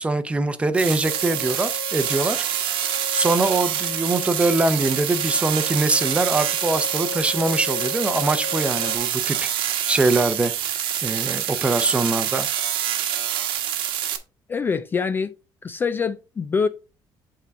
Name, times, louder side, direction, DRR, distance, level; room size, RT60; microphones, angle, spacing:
voice 1, 0.0-2.8 3.1-9.5 9.9-10.5 11.0-12.5, right 2 dB, 15° right, 0.7 m, -23 dB
sound 1, 0.7-14.2, right 10 dB, 80° right, 1.2 m, -26 dB
sound 2, 1.0-9.0, left 5 dB, 50° left, 1.2 m, -36 dB
voice 2, 14.5-15.3 15.6-16.7, left 5 dB, 25° left, 0.3 m, -24 dB
8.3 x 3.7 x 4.7 m
cardioid pair, 150°, 9 cm